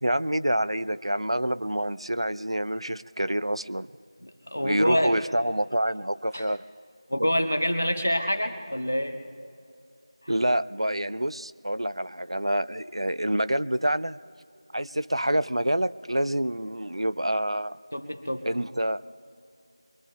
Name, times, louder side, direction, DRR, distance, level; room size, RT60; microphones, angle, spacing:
voice 1, 0.0-3.9 4.6-6.6 7.2-7.3 10.3-14.2 14.7-17.8 18.4-19.0, right 1 dB, 85° right, 15 dB, 0.4 m, -27 dB
voice 2, 4.2-5.2 6.3-6.5 7.1-9.2 10.2-10.3 17.9-18.5, equal, 20° left, 7 dB, 0.4 m, -27 dB
24.0 x 23.5 x 2.2 m, 2.5 s
figure-of-eight pair, 175°, 3 cm